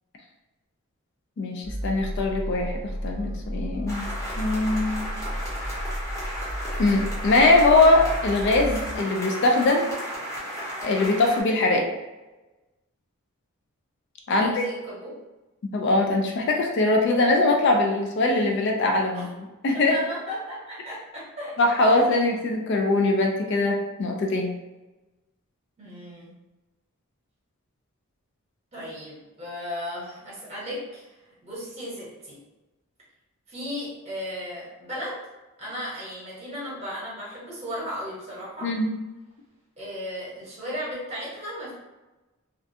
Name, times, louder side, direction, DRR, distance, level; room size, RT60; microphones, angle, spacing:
voice 1, 1.4-4.1 4.4-5.2 6.8-10.0 10.8-11.9 14.3-14.6 15.7-19.9 21.6-24.5 38.6-38.9, left 2 dB, 50° left, 2 dB, 0.3 m, -22 dB
sound 1, 1.6-9.0, equal, 80° left, 1.0 m, -33 dB
sound 2, 3.9-11.4, equal, 15° left, 0.7 m, -34 dB
voice 2, 14.3-15.1 19.1-19.3 19.9-21.6 21.8-22.0 25.8-26.3 28.7-31.1 31.4-32.4 33.5-35.2 35.6-38.7 39.8-41.7, equal, 30° right, -7 dB, 0.9 m, -35 dB
2.4 x 2.2 x 2.6 m, 1.1 s
head